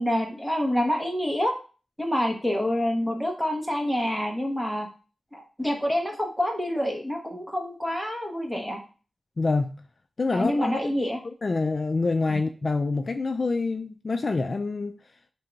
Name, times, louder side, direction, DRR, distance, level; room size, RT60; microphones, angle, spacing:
voice 1, 0.0-1.5 2.0-4.9 5.3-8.8 10.3-11.2, equal, ahead, 2 dB, 1.1 m, -27 dB
voice 2, 9.4-9.8 10.2-10.8 11.4-15.0, left 3 dB, 50° left, 7 dB, 0.3 m, -26 dB
3.6 x 2.7 x 4.4 m, 0.37 s
cardioid pair, 60°, 0 cm